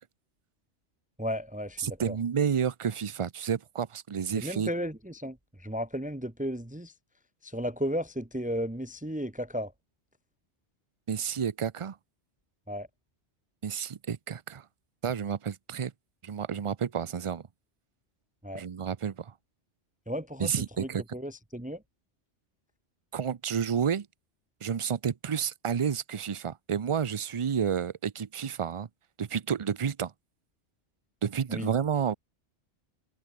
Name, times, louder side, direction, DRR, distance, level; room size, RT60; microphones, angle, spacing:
voice 1, 1.2-2.2 4.3-6.9 7.4-9.7 12.7-12.9 18.4-18.6 20.1-21.8 31.5-31.7, equal, 5° right, 1.3 m, -34 dB
voice 2, 1.8-4.7 11.1-12.0 13.6-14.6 15.0-15.9 16.2-17.4 18.5-19.3 20.4-21.0 23.1-24.1 24.6-28.9 29.2-30.1 31.2-32.1, right 7 dB, 35° right, 0.5 m, -30 dB
omnidirectional pair, 1.2 m